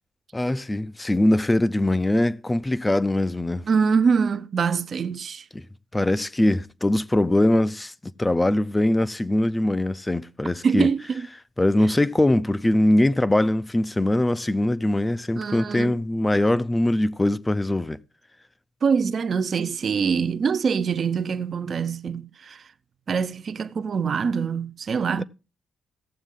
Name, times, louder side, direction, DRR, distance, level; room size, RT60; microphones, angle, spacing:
voice 1, 0.3-3.7 5.5-5.6 5.9-7.9 8.2-10.9 11.6-18.0 25.2-25.3, left 1 dB, 15° left, 0.5 m, -22 dB
voice 2, 3.7-5.5 10.6-11.3 15.4-15.9 18.8-22.6 23.1-25.2, right 6 dB, 50° right, 0.6 m, -24 dB
16.5 x 7.2 x 3.7 m
cardioid pair, 90°, 0 cm